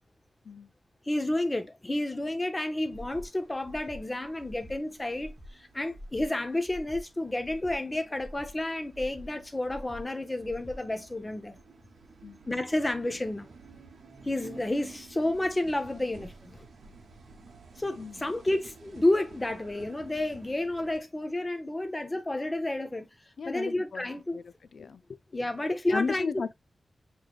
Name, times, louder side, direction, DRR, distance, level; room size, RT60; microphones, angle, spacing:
voice 1, 1.1-11.6 12.5-13.5 14.2-16.7 17.8-23.1 23.4-24.4 25.3-26.3, left 1 dB, 15° left, 0.6 m, -30 dB
Breathing, 2.9-3.3 3.6-4.0 4.4-4.8 5.1-5.5 5.9-6.3 6.6-7.0 7.4-7.8 8.1-8.5 8.9-9.3 9.7-10.0 10.4-10.8, equal, 5° right, 1.0 m, -45 dB
sound 1, 2.9-21.0, right 4 dB, 80° right, 0.8 m, -53 dB
voice 2, 18.0-18.3 23.4-25.2 25.9-26.5, left 5 dB, 70° left, 0.3 m, -36 dB
6.4 x 3.0 x 2.3 m
wide cardioid pair, 160°, 0 cm